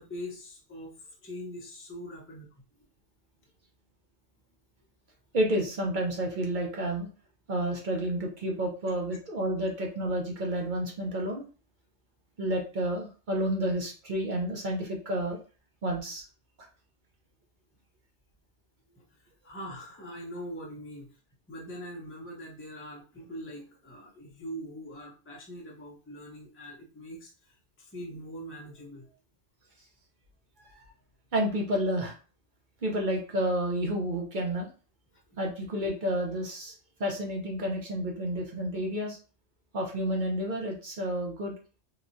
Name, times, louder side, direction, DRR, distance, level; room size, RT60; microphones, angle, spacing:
voice 1, 0.0-2.5 18.9-19.2 19.4-21.1 21.5-29.1, equal, 15° left, -3 dB, 0.6 m, -42 dB
voice 2, 5.3-7.1 7.5-11.4 12.4-15.4 15.8-16.2 30.7-30.8 31.3-32.2 32.8-34.7 35.4-36.7 37.0-39.2 39.7-41.5, right 1 dB, 50° right, 0 dB, 0.7 m, -30 dB
3.0 x 2.2 x 2.6 m, 0.35 s
omnidirectional pair, 1.2 m